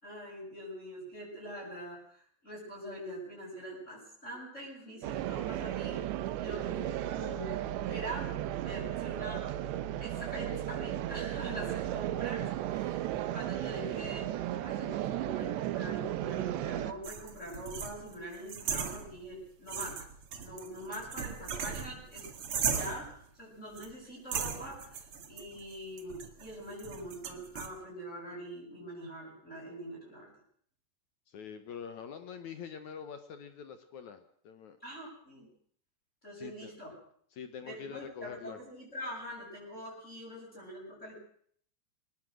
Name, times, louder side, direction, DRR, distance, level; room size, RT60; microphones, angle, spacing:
voice 1, 0.0-6.0 6.4-8.3 8.6-9.7 10.0-13.1 13.3-20.0 20.4-22.3 22.7-30.3 34.8-35.5 36.2-36.9 37.6-41.2, right 1 dB, 15° left, -5 dB, 7.6 m, -44 dB
sound 1, 5.0-16.9, right 13 dB, 85° right, 3.3 m, -35 dB
sound 2, 17.0-19.4 19.7-23.2 23.8-23.9 24.3-27.7, right 6 dB, 50° right, 1.9 m, -38 dB
voice 2, 31.3-34.8 36.4-36.7 37.3-38.6, left 7 dB, 65° left, 9 dB, 1.9 m, -45 dB
22.5 x 19.5 x 6.3 m, 0.62 s
omnidirectional pair, 4.9 m